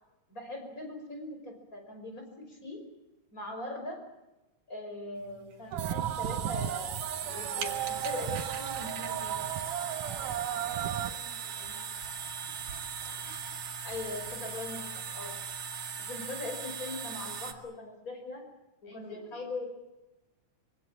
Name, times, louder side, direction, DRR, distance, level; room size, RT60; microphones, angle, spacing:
voice 1, 0.3-2.8 3.3-4.0 4.7-6.9 7.3-9.4 13.8-15.4 16.0-18.5 18.8-19.7, left 2 dB, 25° left, 4 dB, 5.7 m, -40 dB
sound 1, 5.2-17.5, right 6 dB, 70° right, 3.3 m, -39 dB
sound 2, 5.7-11.1, right 11 dB, 90° right, 2.6 m, -35 dB
voice 2, 10.0-12.1 13.1-13.3 14.5-14.6 18.8-19.5, left 1 dB, 75° left, 2 dB, 9.1 m, -54 dB
25.0 x 23.5 x 7.5 m, 1.0 s
omnidirectional pair, 3.5 m